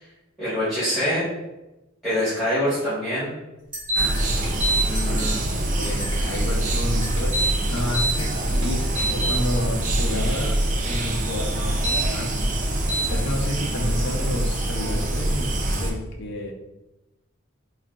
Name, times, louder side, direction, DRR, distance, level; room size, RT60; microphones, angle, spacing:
voice 1, 0.4-1.2 2.0-3.3 4.8-5.8, equal, ahead, -14 dB, 1.2 m, -25 dB
sound 1, 3.7-4.4 4.9-5.5 5.8-6.3 6.7-7.2 8.1-8.6, equal, 25° right, 1.1 m, -38 dB
sound 2, 3.9-4.1 4.4-4.8 7.2-8.1 8.6-9.4 11.7-12.0 12.9-13.1, right 2 dB, 85° right, 1.0 m, -24 dB
sound 3, 4.0-15.9, right 1 dB, 40° right, 0.4 m, -24 dB
voice 2, 5.8-12.4 13.1-16.5, left 1 dB, 60° left, 0 dB, 0.5 m, -30 dB
3.6 x 2.4 x 2.3 m, 0.99 s
head